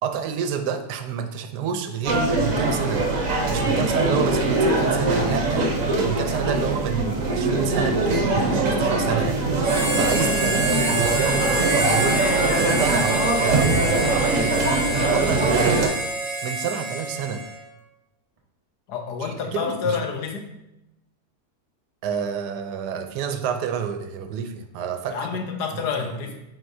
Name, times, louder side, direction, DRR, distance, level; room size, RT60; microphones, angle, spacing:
voice 1, 0.0-3.1 3.5-5.7 6.0-9.4 9.7-12.2 12.6-14.6 15.1-17.4 19.2-20.0 22.0-25.3 25.7-26.1, right 7 dB, 85° right, 7 dB, 1.2 m, -28 dB
sound 1, 2.0-15.9, right 2 dB, 55° right, 1.3 m, -22 dB
Harmonica, 9.6-17.6, right 1 dB, 25° right, 0.9 m, -27 dB
voice 2, 18.9-20.5 25.1-26.4, left 6 dB, 85° left, 4 dB, 1.4 m, -28 dB
7.9 x 4.5 x 2.7 m, 0.90 s
omnidirectional pair, 1.7 m